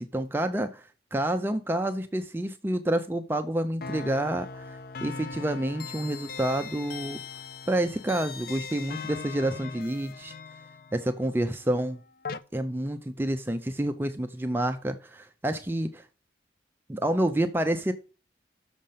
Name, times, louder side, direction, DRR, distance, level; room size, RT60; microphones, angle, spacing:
voice 1, 0.0-7.2 7.7-10.3 10.9-12.0 12.5-16.1 16.9-17.9, right 1 dB, 10° right, 0.4 m, -28 dB
sound 1, 3.8-12.4, left 5 dB, 50° left, 0.4 m, -40 dB
6.5 x 5.2 x 5.5 m
head